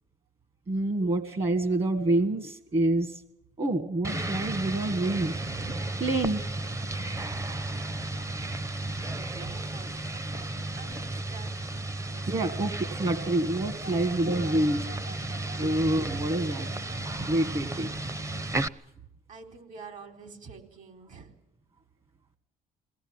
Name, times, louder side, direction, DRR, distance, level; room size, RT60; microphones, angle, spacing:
voice 1, 0.7-3.1 3.6-5.4 6.0-6.4 12.3-14.9 15.6-16.7 17.3-17.9, right 2 dB, 35° right, 10 dB, 1.7 m, -27 dB
sound 1, 4.0-18.7, right 2 dB, 20° right, 0.8 m, -34 dB
voice 2, 9.3-11.5 12.0-12.6 15.6-15.8 19.3-21.3, right 5 dB, 50° right, 6 dB, 4.2 m, -47 dB
sound 2, 13.0-18.8, right 3 dB, 85° right, 4.7 m, -50 dB
21.0 x 17.5 x 8.9 m, 0.79 s
cardioid pair, 110°, 17 cm